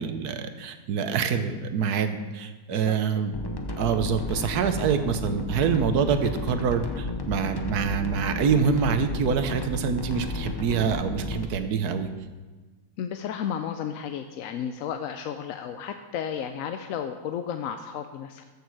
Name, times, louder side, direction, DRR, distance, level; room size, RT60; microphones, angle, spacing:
voice 1, 0.0-3.3 3.8-12.1, right 6 dB, 75° right, 9 dB, 1.3 m, -26 dB
sound 1, 3.3-11.4, left 2 dB, 35° left, 0.4 m, -33 dB
voice 2, 13.0-18.4, left 8 dB, 70° left, 7 dB, 0.9 m, -33 dB
13.5 x 6.6 x 4.7 m, 1.3 s
omnidirectional pair, 1.7 m